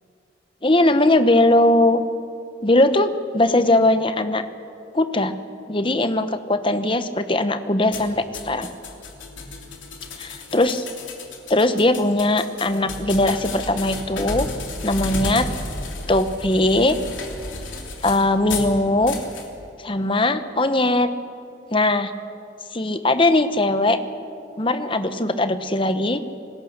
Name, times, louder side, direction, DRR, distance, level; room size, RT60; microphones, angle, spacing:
voice 1, 0.6-2.0 2.6-4.4 4.9-5.3 5.7-8.7 10.2-10.8 11.5-14.5 14.8-15.5 16.1-17.0 18.0-19.2 19.8-21.1 21.7-22.1 22.7-24.0 24.6-26.2, left 2 dB, 25° left, 10 dB, 1.0 m, -19 dB
sound 1, 7.9-18.7 19.1-19.5, left 3 dB, 85° left, 3.2 m, -33 dB
27.0 x 19.0 x 6.6 m, 2.6 s
head